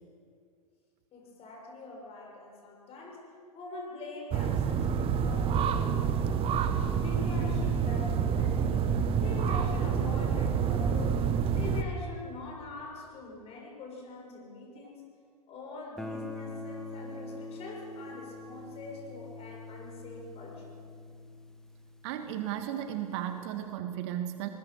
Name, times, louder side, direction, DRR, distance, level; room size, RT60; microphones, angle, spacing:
voice 1, 1.1-3.2 3.5-6.6 7.0-8.9 9.2-15.0 15.5-20.8, left 3 dB, 30° left, 0 dB, 6.5 m, -44 dB
sound 1, 4.3-11.8, right 7 dB, 30° right, 1.4 m, -28 dB
Guitar, 16.0-22.7, left 2 dB, 5° left, 1.7 m, -44 dB
voice 2, 22.0-24.5, right 11 dB, 45° right, 8 dB, 1.7 m, -35 dB
23.5 x 20.5 x 6.5 m, 2.3 s
figure-of-eight pair, 95°, 20 cm